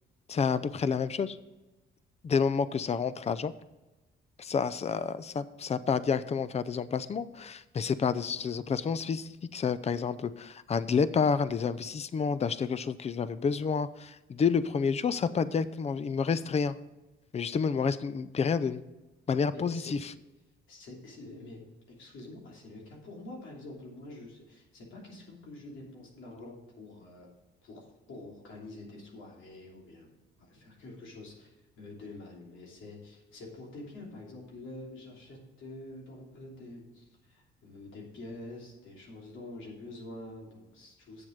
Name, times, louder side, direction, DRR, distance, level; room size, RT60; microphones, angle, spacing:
voice 1, 0.3-1.4 2.2-3.5 4.4-16.8 17.3-18.8 19.3-20.1, left 6 dB, 30° left, 15 dB, 0.5 m, -29 dB
voice 2, 19.5-19.9 20.7-21.6 21.9-27.3 27.6-30.1 30.4-41.2, left 2 dB, 75° left, -2 dB, 3.0 m, -46 dB
8.0 x 7.4 x 5.2 m, 1.1 s
cardioid pair, 90°, 20 cm